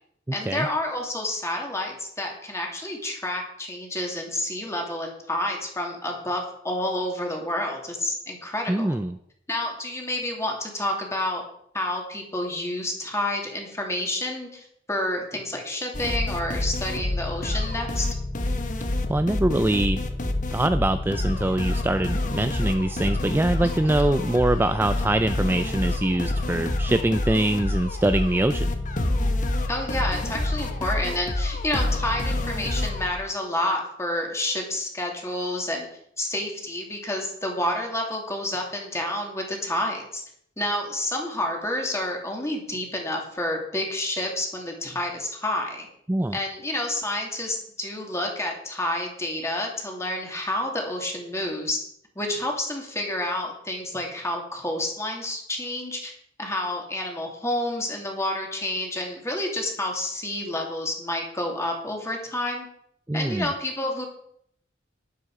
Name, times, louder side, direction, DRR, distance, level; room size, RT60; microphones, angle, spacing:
voice 1, 0.3-8.9 9.5-11.4 11.7-18.0 23.6-24.1 29.7-35.9 36.2-40.2 40.6-45.9 46.3-51.8 52.1-56.1 56.4-62.7 63.1-64.1, left 1 dB, 15° left, 1 dB, 2.6 m, -29 dB
voice 2, 8.7-9.2 19.1-28.7 46.1-46.4 63.1-63.5, right 1 dB, 10° right, 10 dB, 0.3 m, -24 dB
sound 1, 15.9-33.1, left 2 dB, 40° left, 1.2 m, -27 dB
12.0 x 11.0 x 4.8 m, 0.71 s
head